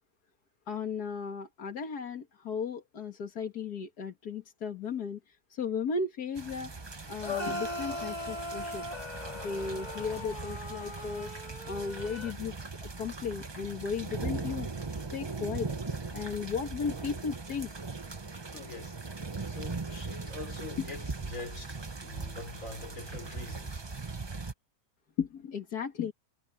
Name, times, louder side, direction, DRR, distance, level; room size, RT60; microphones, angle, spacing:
voice 1, 0.7-5.2 5.5-6.7 7.1-8.8 9.4-11.3 11.7-12.5 12.8-14.7 15.1-15.7 16.1-17.7 25.2-26.1, left 5 dB, 90° left, 2.3 m, -35 dB
sound 1, 6.4-24.5, right 4 dB, 20° right, 0.7 m, -40 dB
sound 2, 7.2-12.3, left 1 dB, 30° left, 1.9 m, -39 dB
voice 2, 18.5-23.8, left 3 dB, 55° left, 4.8 m, -44 dB
omnidirectional pair, 1.6 m